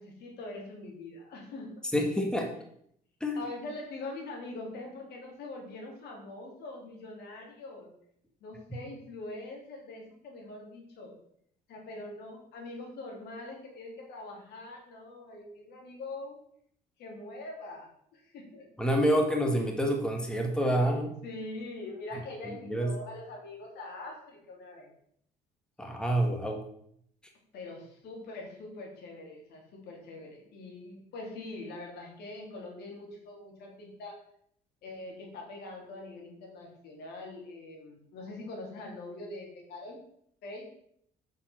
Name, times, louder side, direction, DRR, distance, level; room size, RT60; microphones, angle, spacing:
voice 1, 0.0-1.7 3.3-7.9 8.4-11.1 11.7-16.4 17.0-18.7 21.2-24.9 27.5-34.2 34.8-40.0 40.4-40.7, left 2 dB, 75° left, 0 dB, 3.3 m, -43 dB
voice 2, 1.9-2.5 3.2-3.4 18.8-21.1 22.5-22.9 25.8-26.6, equal, 5° left, 2 dB, 1.6 m, -27 dB
7.6 x 6.5 x 6.0 m, 0.68 s
cardioid pair, 110°, 17 cm